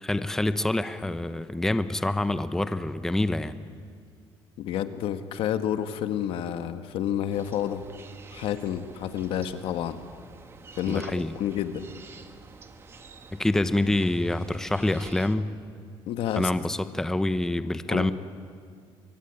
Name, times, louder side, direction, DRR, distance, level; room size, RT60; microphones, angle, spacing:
voice 1, 0.0-3.6 10.9-11.3 13.4-15.5 16.4-18.1, left 1 dB, 5° left, 11 dB, 0.7 m, -26 dB
voice 2, 4.6-7.8 8.3-10.0 10.8-11.1 11.3-11.9 16.1-16.5 17.9-18.1, left 10 dB, 70° left, 10 dB, 1.4 m, -29 dB
sound 1, 7.3-15.3, right 4 dB, 25° right, 1.5 m, -48 dB
25.0 x 22.5 x 9.9 m, 2.2 s
cardioid pair, 175°, 10 cm